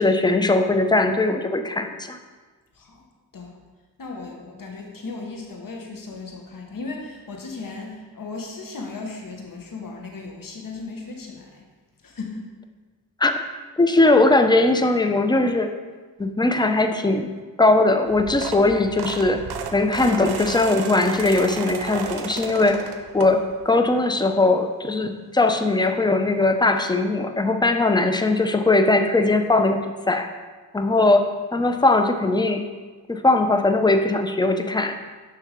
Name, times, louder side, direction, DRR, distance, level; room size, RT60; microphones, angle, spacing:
voice 1, 0.0-2.2 13.2-13.3 13.8-15.7 16.2-17.3 17.6-19.4 19.7-22.8 23.1-29.8 30.1-30.3 30.7-32.6 33.1-35.0, left 2 dB, 10° left, 7 dB, 0.5 m, -20 dB
voice 2, 2.7-3.1 3.3-3.6 4.0-11.7 12.0-12.5, left 3 dB, 60° left, 1 dB, 1.1 m, -36 dB
sound 1, 18.1-23.7 24.2-24.4 25.7-25.8 26.0-26.1 26.4-26.6, right 6 dB, 85° right, 0.5 m, -33 dB
6.2 x 3.4 x 5.0 m, 1.4 s
cardioid pair, 40°, 38 cm